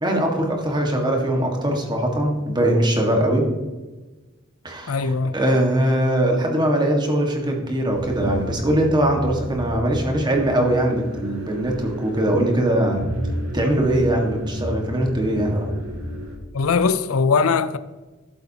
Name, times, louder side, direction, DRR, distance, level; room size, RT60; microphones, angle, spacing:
voice 1, 0.0-3.4 4.6-13.0 13.5-15.8, right 1 dB, 20° right, 1.7 m, -21 dB
voice 2, 4.9-5.3 16.5-17.8, left 5 dB, 90° left, 0.5 m, -20 dB
sound 1, 7.9-16.4, equal, 90° right, 2.4 m, -31 dB
12.5 x 7.8 x 2.9 m
head